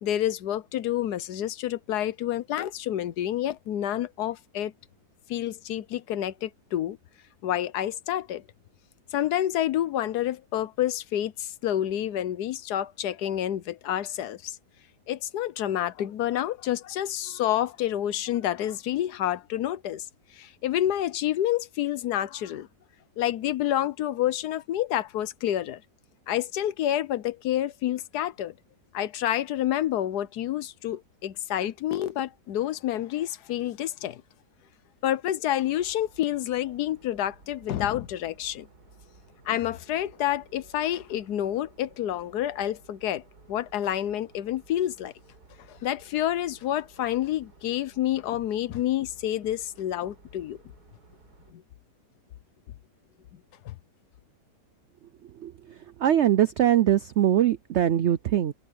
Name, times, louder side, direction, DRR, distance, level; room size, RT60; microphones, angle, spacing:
voice 1, 0.0-4.7 5.3-7.0 7.4-8.4 9.1-14.6 15.1-20.0 20.3-22.7 23.2-25.8 26.3-28.5 28.9-34.2 35.0-38.7 39.5-43.2 43.5-45.1 45.7-50.6 51.5-51.6 53.6-53.7, left 12 dB, 70° left, 1.3 m, -28 dB
sound 1, 35.7-51.5, right 3 dB, 65° right, 4.5 m, -56 dB
voice 2, 56.0-58.5, right 11 dB, 90° right, 0.6 m, -22 dB
omnidirectional pair, 1.8 m